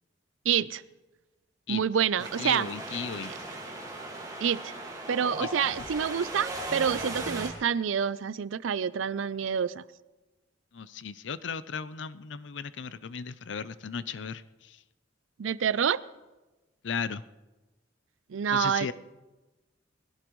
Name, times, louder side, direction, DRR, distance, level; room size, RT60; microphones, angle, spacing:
voice 1, 0.5-0.8 1.7-2.7 4.4-4.7 5.1-9.8 15.4-16.0 18.3-18.9, right 7 dB, 85° right, 18 dB, 0.5 m, -27 dB
Wind, 2.2-7.5, right 1 dB, 20° right, 2.3 m, -37 dB
voice 2, 2.4-3.3 5.4-5.9 10.7-14.8 16.8-17.2 18.5-18.9, left 6 dB, 70° left, 15 dB, 0.6 m, -36 dB
21.0 x 16.5 x 3.1 m, 1.1 s
head